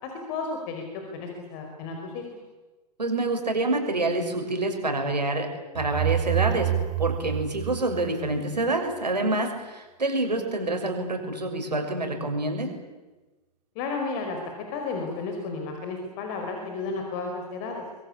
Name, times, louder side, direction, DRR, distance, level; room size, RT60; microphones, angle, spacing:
voice 1, 0.0-2.2 13.7-17.8, left 4 dB, 35° left, 3 dB, 5.1 m, -33 dB
voice 2, 3.0-5.5 5.7-6.7 7.0-12.7, right 2 dB, 80° right, 3 dB, 6.5 m, -27 dB
sound 1, 5.8-8.7, right 12 dB, 30° right, 1.4 m, -28 dB
26.5 x 22.5 x 8.6 m, 1.2 s
figure-of-eight pair, 110°, 21 cm